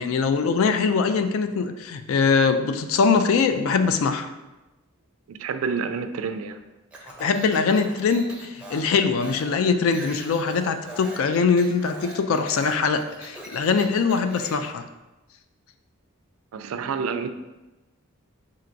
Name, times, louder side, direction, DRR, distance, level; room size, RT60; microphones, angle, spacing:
voice 1, 0.0-4.3 7.2-14.8, left 5 dB, 75° left, 8 dB, 0.3 m, -22 dB
voice 2, 5.3-6.6 16.5-17.3, right 5 dB, 80° right, 9 dB, 0.3 m, -28 dB
Speech, 6.9-14.7, right 1 dB, 5° right, 0.5 m, -42 dB
4.3 x 3.7 x 2.5 m, 1.1 s
head